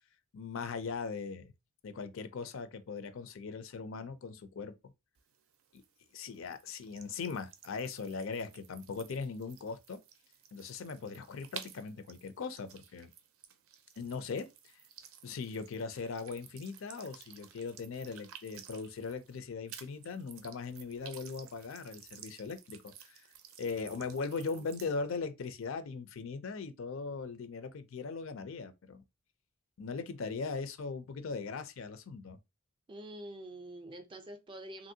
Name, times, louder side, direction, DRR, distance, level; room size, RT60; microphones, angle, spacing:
voice 1, 0.3-1.5 1.8-4.8 5.7-5.8 6.1-10.0 10.5-13.1 14.0-14.5 15.2-23.2 23.6-29.0 29.8-32.4, left 4 dB, 65° left, 0.4 m, -39 dB
sound 1, 5.2-19.4 19.7-24.9, right 9 dB, 80° right, 0.5 m, -54 dB
voice 2, 24.3-24.7 32.9-34.9, right 1 dB, 25° right, 0.4 m, -46 dB
2.9 x 2.6 x 2.6 m
head